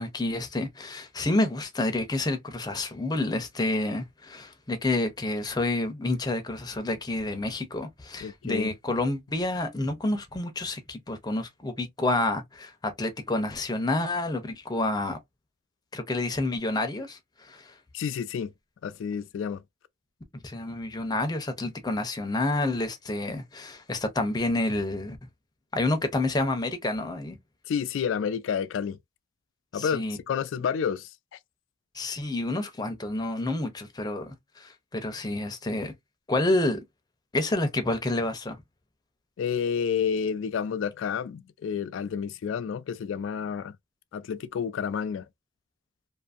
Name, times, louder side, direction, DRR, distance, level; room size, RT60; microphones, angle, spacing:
voice 1, 0.0-15.2 15.9-17.7 20.3-25.2 25.7-27.4 29.7-30.2 31.9-35.9 36.3-36.8 37.3-38.6, left 2 dB, 20° left, 0.6 m, -29 dB
voice 2, 8.2-8.7 17.9-18.5 18.8-19.6 27.7-29.0 29.7-31.1 39.4-43.7 44.1-45.2, left 7 dB, 70° left, 0.3 m, -30 dB
2.6 x 2.6 x 2.4 m
head